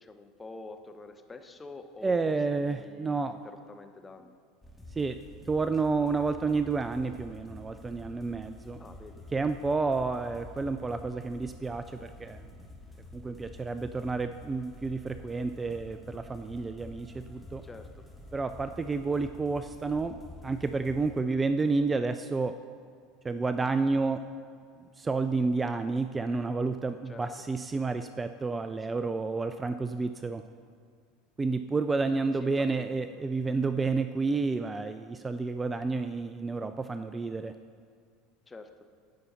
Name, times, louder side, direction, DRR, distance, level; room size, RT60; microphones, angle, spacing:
voice 1, 0.0-4.3 8.8-9.3 17.6-18.1 27.1-27.3 28.8-29.0 32.3-33.1 38.5-38.7, left 3 dB, 20° left, 7 dB, 0.8 m, -47 dB
voice 2, 2.0-3.3 5.0-5.2 5.5-8.8 9.3-12.5 13.1-17.6 18.3-20.2 20.4-22.5 23.2-24.2 25.0-30.4 31.4-37.5, right 4 dB, 20° right, 10 dB, 0.4 m, -30 dB
sound 1, 4.6-21.2, left 2 dB, 5° left, 1.8 m, -48 dB
16.0 x 5.5 x 4.1 m, 2.1 s
figure-of-eight pair, 75°, 0 cm